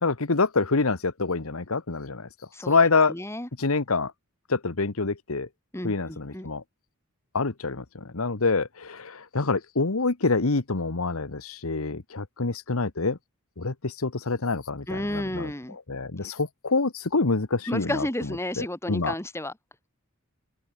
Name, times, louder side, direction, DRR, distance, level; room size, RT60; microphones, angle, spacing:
voice 1, 0.0-2.3 2.7-3.1 3.6-4.1 4.5-5.5 5.8-6.6 7.3-13.2 13.6-15.5 15.9-18.0 18.6-19.1, left 3 dB, 75° left, 1.3 m, -26 dB
voice 2, 3.1-3.5 5.7-6.5 14.9-15.8 17.7-19.5, left 1 dB, 10° left, 2.7 m, -32 dB
open air
head